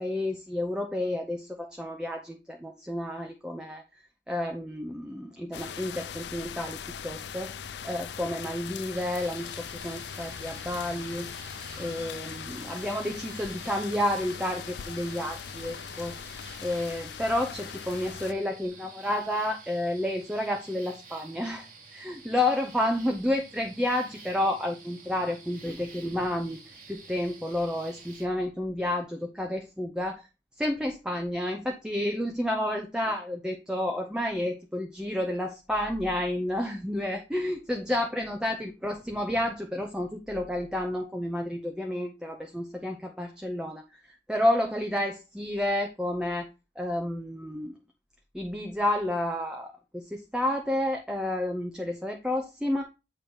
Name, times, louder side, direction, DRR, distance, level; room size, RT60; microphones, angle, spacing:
voice 1, 0.0-3.8 4.3-11.3 11.8-16.1 16.6-30.3 30.6-44.0 44.3-46.5 46.8-47.8 48.3-52.8, left 1 dB, 5° right, 3 dB, 0.6 m, -30 dB
sound 1, 5.5-18.3, left 7 dB, 70° left, 0.4 m, -40 dB
sound 2, 8.9-28.3, right 4 dB, 45° right, 1.4 m, -50 dB
8.6 x 2.9 x 5.3 m, 0.28 s
head